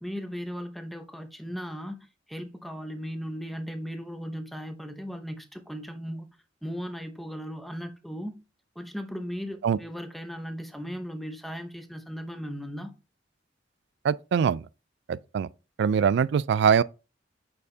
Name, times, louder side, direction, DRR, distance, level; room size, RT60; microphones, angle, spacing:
voice 1, 0.0-6.3 6.6-8.3 8.8-12.9, equal, ahead, 0.8 m, -37 dB
voice 2, 14.0-14.6 15.1-15.5 15.8-16.8, right 7 dB, 65° right, 0.3 m, -23 dB
8.3 x 4.5 x 2.7 m
head